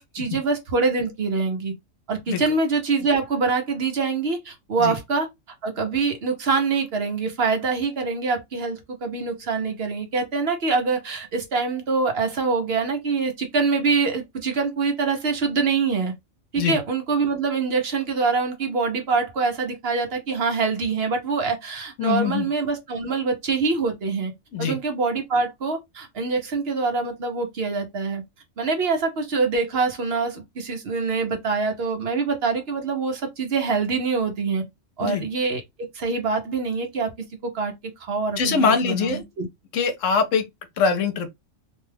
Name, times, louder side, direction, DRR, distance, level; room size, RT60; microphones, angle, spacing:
voice 1, 0.0-1.7 2.1-5.3 5.6-16.1 16.5-24.3 24.6-28.2 28.6-34.6 35.0-35.6 35.9-37.1 37.5-37.7 38.1-39.5, right 4 dB, 55° right, 0.8 m, -24 dB
voice 2, 22.0-22.5 24.5-24.8 35.0-35.2 38.4-39.2 39.7-40.4 40.8-41.3, left 5 dB, 75° left, 1.0 m, -22 dB
2.6 x 2.2 x 3.3 m
omnidirectional pair, 1.4 m